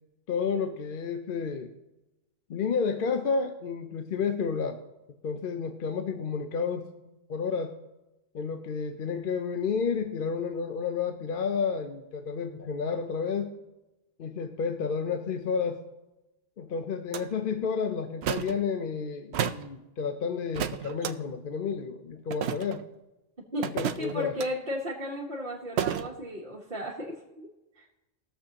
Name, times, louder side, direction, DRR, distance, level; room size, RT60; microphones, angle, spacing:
voice 1, 0.3-1.7 2.5-4.8 5.2-7.8 8.3-13.6 14.2-15.8 16.6-22.8 23.7-24.3, left 5 dB, 55° left, 7 dB, 0.7 m, -31 dB
sound 1, 17.1-17.2 18.2-18.6 19.3-19.7 20.5-21.1 22.3-22.8 23.6-24.5 25.8-26.1, right 9 dB, 65° right, 0.8 m, -31 dB
voice 2, 24.0-27.5 27.8-27.9, equal, 40° right, -5 dB, 1.4 m, -34 dB
20.5 x 6.8 x 2.9 m, 0.99 s
omnidirectional pair, 1.3 m